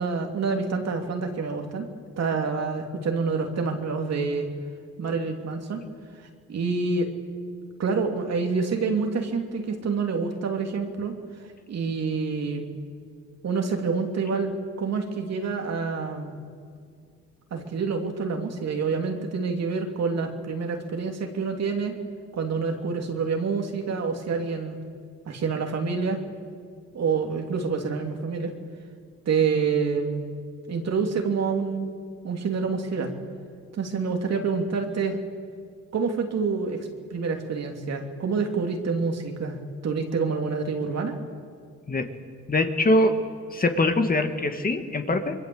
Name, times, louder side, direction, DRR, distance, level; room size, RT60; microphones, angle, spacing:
voice 1, 0.0-1.9 2.2-4.5 5.0-5.8 6.5-7.1 7.8-11.2 11.7-12.7 13.4-14.5 14.8-16.4 17.5-21.9 22.3-24.8 25.3-26.2 26.9-28.5 29.2-30.3 30.7-31.9 32.2-33.1 33.7-35.2 35.9-39.6 39.8-41.2, right 5 dB, 60° right, 3 dB, 3.1 m, -27 dB
voice 2, 42.5-43.1 43.5-45.4, left 2 dB, 30° left, 6 dB, 2.0 m, -23 dB
26.0 x 22.0 x 8.1 m, 2.1 s
cardioid pair, 90°, 30 cm